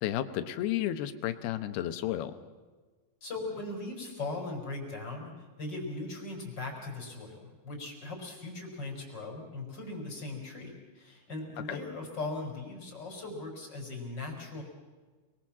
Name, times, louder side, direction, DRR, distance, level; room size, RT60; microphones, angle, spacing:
voice 1, 0.0-2.4 11.7-11.8, left 12 dB, 85° left, 10 dB, 3.1 m, -32 dB
voice 2, 3.2-14.6, left 2 dB, 25° left, 0 dB, 5.7 m, -39 dB
29.0 x 21.5 x 7.4 m, 1.3 s
omnidirectional pair, 4.4 m